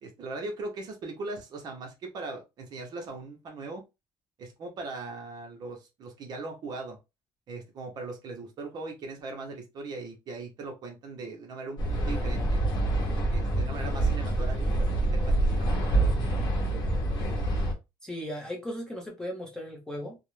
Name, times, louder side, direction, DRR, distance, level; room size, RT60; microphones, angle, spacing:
voice 1, 0.0-3.8 4.4-7.0 7.5-11.8 12.1-12.6 13.3-14.6 15.0-16.2, right 3 dB, 40° right, 0.7 m, -39 dB
sound 1, 11.8-17.7, right 2 dB, 45° left, 0.9 m, -26 dB
voice 2, 18.0-20.2, equal, 5° left, 0.6 m, -37 dB
2.4 x 2.0 x 3.0 m
cardioid pair, 155°, 10 cm